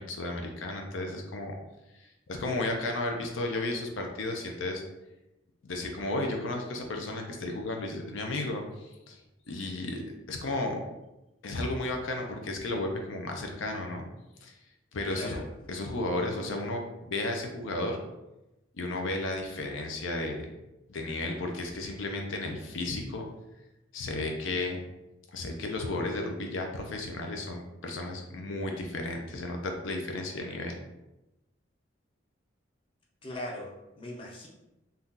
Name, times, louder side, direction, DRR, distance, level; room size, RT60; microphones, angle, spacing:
voice 1, 0.0-1.6 2.0-4.8 5.6-9.2 9.5-10.8 11.4-14.0 14.4-14.5 14.9-15.4 15.7-18.0 18.7-20.5 20.9-23.2 23.9-24.8 25.3-30.8, left 2 dB, 85° left, 2 dB, 0.5 m, -33 dB
voice 2, 15.1-15.4 33.2-34.5, left 1 dB, 25° left, -2 dB, 0.5 m, -39 dB
2.7 x 2.3 x 3.6 m, 0.95 s
head